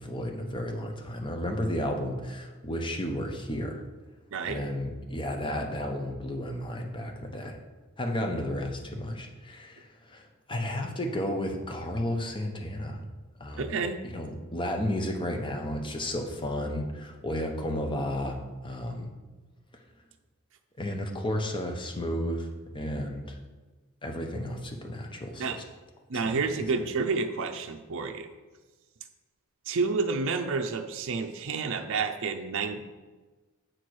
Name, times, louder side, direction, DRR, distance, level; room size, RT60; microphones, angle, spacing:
voice 1, 0.0-3.8 4.4-7.6 8.0-13.0 13.4-19.1 20.8-22.5 22.7-23.4 24.0-25.6 26.1-26.4, left 1 dB, 20° left, 3 dB, 0.8 m, -33 dB
voice 2, 13.6-14.0 25.4-25.6 26.1-28.3 29.7-32.9, right 4 dB, 60° right, 5 dB, 0.5 m, -29 dB
7.7 x 4.5 x 4.7 m, 1.3 s
head